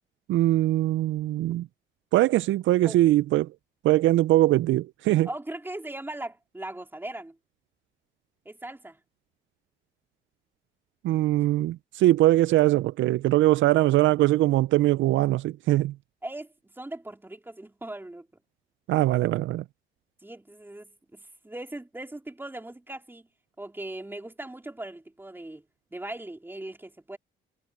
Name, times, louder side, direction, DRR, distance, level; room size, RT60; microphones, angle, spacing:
voice 1, 0.3-1.7 2.1-3.5 3.8-5.3 11.0-15.9 18.9-19.6, right 15 dB, 75° right, 0.4 m, -22 dB
voice 2, 5.2-7.4 8.5-9.0 11.0-11.5 16.2-18.3 20.2-23.3 23.6-25.6 25.9-27.2, right 1 dB, 10° right, 4.0 m, -39 dB
cardioid pair, 90°, 20 cm